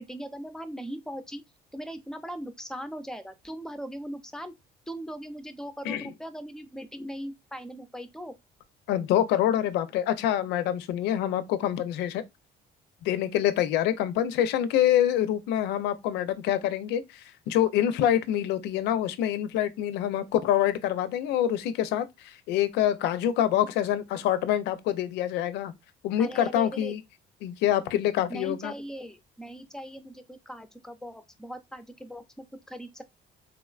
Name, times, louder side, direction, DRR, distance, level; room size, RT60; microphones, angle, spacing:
voice 1, 0.0-1.4 1.7-4.5 4.9-8.3 26.2-27.0 28.3-32.2 32.7-33.0, equal, 5° left, 0.4 m, -39 dB
voice 2, 8.9-12.2 13.0-25.7 26.0-27.0 27.4-28.7, left 11 dB, 85° left, 0.4 m, -26 dB
3.7 x 2.2 x 2.3 m
cardioid pair, 110°, 17 cm